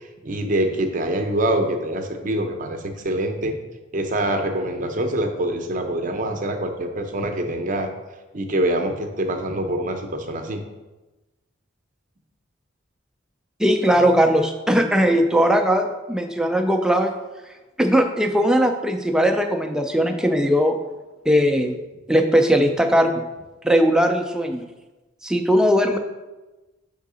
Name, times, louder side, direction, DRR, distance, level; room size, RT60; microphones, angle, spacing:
voice 1, 0.2-3.6 3.9-7.9 8.3-10.6, right 1 dB, 40° right, 5 dB, 0.6 m, -25 dB
voice 2, 13.6-17.1 17.8-20.8 21.3-21.8 22.1-23.3 23.6-24.6 25.2-26.0, equal, 5° right, 4 dB, 0.4 m, -19 dB
6.3 x 3.7 x 4.9 m, 1.1 s
head